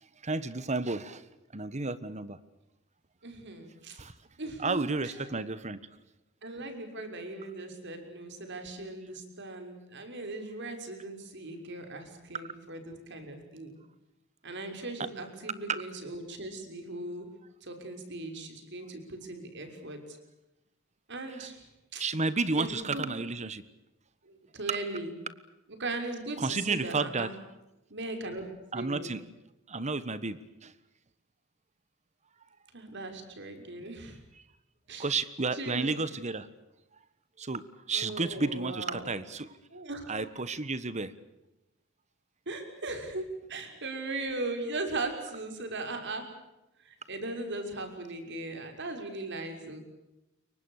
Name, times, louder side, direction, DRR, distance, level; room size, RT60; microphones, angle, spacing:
voice 1, 0.2-1.2 1.5-2.4 4.0-4.1 4.6-5.8 15.7-15.8 21.4-21.5 22.0-23.6 26.4-27.3 28.7-29.2 29.7-30.7 35.0-36.5 37.4-39.5 40.1-41.1, right 3 dB, 35° right, 15 dB, 1.4 m, -32 dB
voice 2, 3.2-4.0 4.4-5.1 6.4-13.7 14.4-17.3 17.6-20.2 21.1-21.6 21.9-22.0 22.6-23.1 24.2-25.1 25.8-27.3 27.9-28.4 28.7-29.1 32.7-34.2 34.9-35.2 35.5-35.9 37.9-39.1 39.7-40.1 42.5-46.3 46.8-49.8, right 2 dB, 60° right, 6 dB, 6.1 m, -38 dB
29.0 x 24.0 x 6.6 m, 0.95 s
head